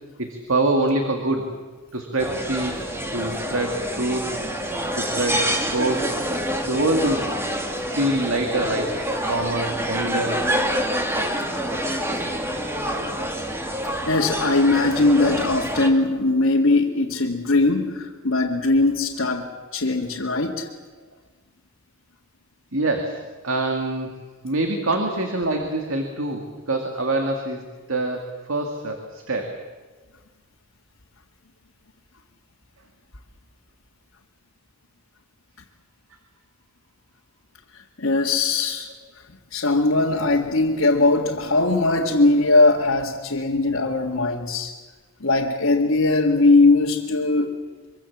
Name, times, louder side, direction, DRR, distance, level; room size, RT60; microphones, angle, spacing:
voice 1, 0.2-1.5 1.9-2.8 3.1-4.3 5.0-6.1 6.6-7.3 7.9-9.0 9.3-10.4 22.7-24.1 24.4-29.5, right 2 dB, 70° right, 4 dB, 2.4 m, -25 dB
sound 1, 2.2-15.9, equal, 10° right, 2.2 m, -27 dB
voice 2, 14.1-20.7 38.0-38.9 39.5-44.7 45.2-47.6, left 2 dB, 75° left, -2 dB, 2.0 m, -20 dB
24.5 x 24.5 x 7.4 m, 1.4 s
head